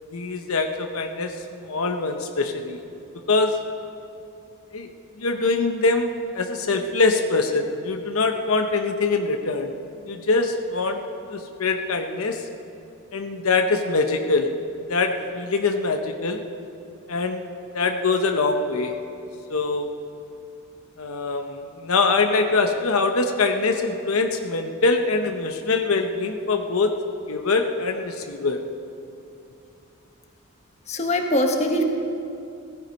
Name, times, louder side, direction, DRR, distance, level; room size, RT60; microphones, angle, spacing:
voice 1, 0.1-2.8 3.3-3.6 4.7-4.9 5.2-9.7 10.1-11.0 11.3-12.5 13.1-14.5 14.9-16.4 17.1-17.5 17.7-18.9 19.5-19.9 21.0-27.0 27.3-28.6, left 3 dB, 80° left, 5 dB, 0.9 m, -23 dB
voice 2, 30.9-31.8, left 1 dB, 30° left, 3 dB, 1.3 m, -22 dB
16.0 x 15.0 x 5.3 m, 2.6 s
head